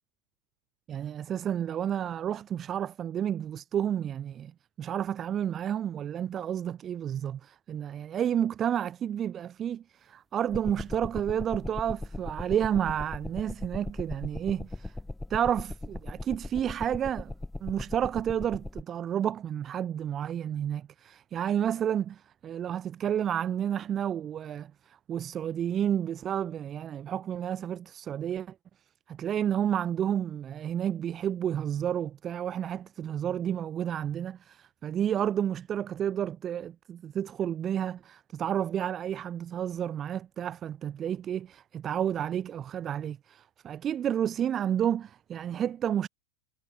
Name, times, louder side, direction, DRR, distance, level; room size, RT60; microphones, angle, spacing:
voice 1, 0.9-14.9 15.3-17.3 17.6-28.5 29.1-46.1, right 9 dB, 25° right, 0.8 m, -31 dB
sound 1, 10.5-18.8, left 2 dB, 5° left, 0.4 m, -39 dB
figure-of-eight pair, 90°, 0 cm